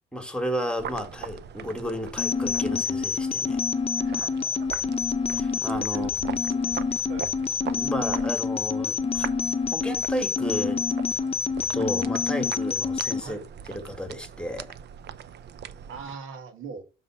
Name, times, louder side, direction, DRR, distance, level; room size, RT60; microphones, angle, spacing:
voice 1, 0.1-3.6 4.8-4.9 5.3-6.4 7.7-9.3 9.7-10.8 11.7-13.4 13.7-14.7, equal, 5° left, 1.8 m, -33 dB
sound 1, 0.8-16.2, right 8 dB, 60° right, 0.6 m, -41 dB
sound 2, 2.2-13.2, left 6 dB, 30° left, 0.8 m, -27 dB
voice 2, 4.1-4.8 5.9-6.1 6.5-6.8 7.1-7.3 13.2-13.4 15.9-16.8, right 5 dB, 90° right, 1.7 m, -41 dB
6.7 x 3.8 x 5.7 m
cardioid pair, 90°, 20 cm